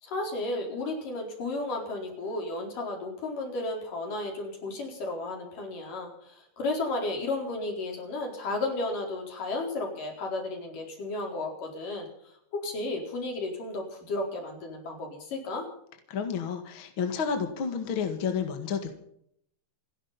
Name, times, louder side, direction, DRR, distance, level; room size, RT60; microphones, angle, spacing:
voice 1, 0.0-12.1 12.5-15.7, left 2 dB, 75° left, 2 dB, 5.9 m, -33 dB
voice 2, 16.1-19.0, left 6 dB, 45° left, 6 dB, 2.3 m, -30 dB
28.5 x 11.5 x 4.2 m, 0.71 s
omnidirectional pair, 3.8 m